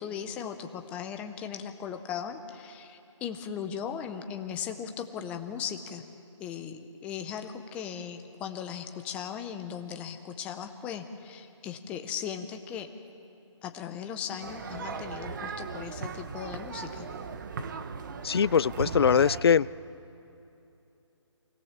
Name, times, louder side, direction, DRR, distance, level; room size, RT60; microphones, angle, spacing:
voice 1, 0.0-6.0 6.4-12.9 13.6-17.1, left 8 dB, 10° left, 6 dB, 0.7 m, -38 dB
sound 1, 14.4-19.4, right 4 dB, 40° right, 1.1 m, -37 dB
voice 2, 18.2-19.7, left 7 dB, 55° left, 19 dB, 0.5 m, -22 dB
28.0 x 18.0 x 7.3 m, 2.8 s
hypercardioid pair, 160°, 16 cm